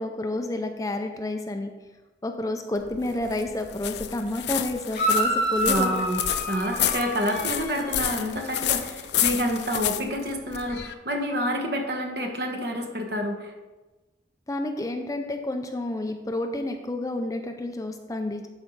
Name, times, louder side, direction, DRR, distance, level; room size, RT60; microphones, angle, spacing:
voice 1, 0.0-1.7 2.2-6.0 14.5-18.5, left 2 dB, 20° left, 5 dB, 0.5 m, -30 dB
sound 1, 2.8-10.9, left 11 dB, 70° left, 0.5 m, -30 dB
sound 2, 4.9-8.2, right 1 dB, 50° left, 2.9 m, -28 dB
voice 2, 5.6-6.2 6.5-13.5, equal, 60° right, 3 dB, 1.2 m, -28 dB
11.5 x 4.6 x 4.0 m, 1.2 s
head